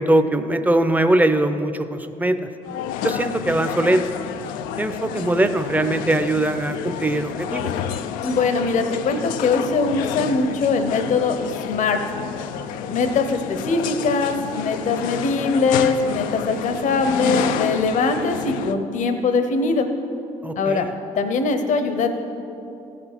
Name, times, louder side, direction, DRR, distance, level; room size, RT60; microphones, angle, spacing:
voice 1, 0.0-2.5 3.0-4.1 4.8-7.7 20.4-20.9, right 1 dB, 10° right, 10 dB, 0.7 m, -21 dB
sound 1, 2.6-18.7, left 9 dB, 90° left, 0.4 m, -30 dB
voice 2, 8.2-11.4 11.7-12.0 12.9-19.9 20.6-20.9 21.2-22.1, left 4 dB, 65° left, 7 dB, 0.9 m, -21 dB
15.0 x 6.0 x 6.0 m, 2.8 s
supercardioid pair, 75°, 14 cm